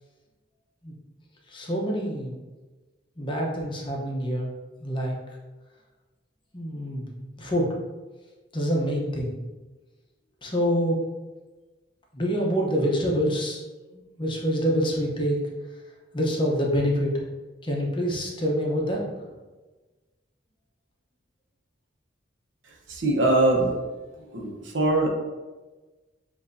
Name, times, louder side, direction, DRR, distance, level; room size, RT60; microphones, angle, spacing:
voice 1, 1.5-2.4 3.2-4.5 4.8-5.2 6.5-7.7 8.5-9.4 10.4-11.0 12.1-13.6 13.9-15.4 16.1-17.2 17.6-19.0, equal, 25° left, -1 dB, 0.8 m, -26 dB
voice 2, 22.6-23.8 24.1-25.1, right 2 dB, 85° right, 0 dB, 0.9 m, -23 dB
7.1 x 2.6 x 2.6 m, 1.2 s
head